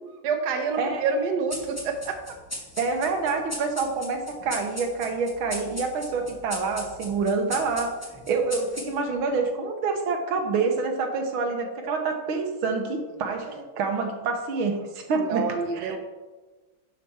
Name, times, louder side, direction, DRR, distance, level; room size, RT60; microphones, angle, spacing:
voice 1, 0.2-2.4 13.4-13.6 15.2-16.0, right 5 dB, 60° right, 5 dB, 1.4 m, -28 dB
sound 1, 1.5-9.2, equal, 10° left, 1.0 m, -39 dB
voice 2, 2.8-8.0 8.3-13.5 13.8-15.6 15.8-16.0, right 4 dB, 80° right, 4 dB, 1.8 m, -27 dB
11.0 x 5.6 x 4.2 m, 1.3 s
omnidirectional pair, 2.2 m